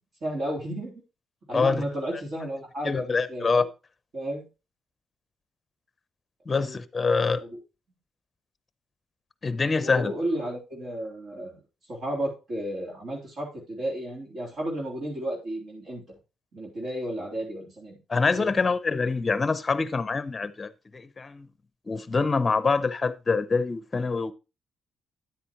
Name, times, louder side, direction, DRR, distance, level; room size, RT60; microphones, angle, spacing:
voice 1, 0.2-0.9 1.5-3.7 4.1-4.5 6.5-6.8 7.4-7.6 9.7-11.6 11.9-16.0 16.5-18.0 18.4-18.5, right 1 dB, 50° right, 3.4 m, -33 dB
voice 2, 1.5-1.8 2.8-3.6 6.5-7.4 9.4-10.1 18.1-21.5 21.9-24.3, left 4 dB, 30° left, 0.7 m, -25 dB
9.7 x 8.3 x 3.0 m
cardioid pair, 90°, 0 cm